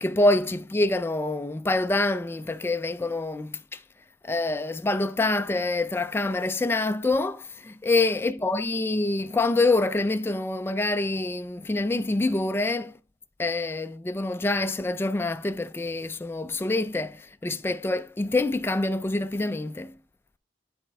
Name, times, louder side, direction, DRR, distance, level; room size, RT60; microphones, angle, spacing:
voice 1, 0.0-3.8 4.2-13.0 13.4-20.0, left 2 dB, 15° left, 0.3 m, -26 dB
9.2 x 4.2 x 3.4 m
head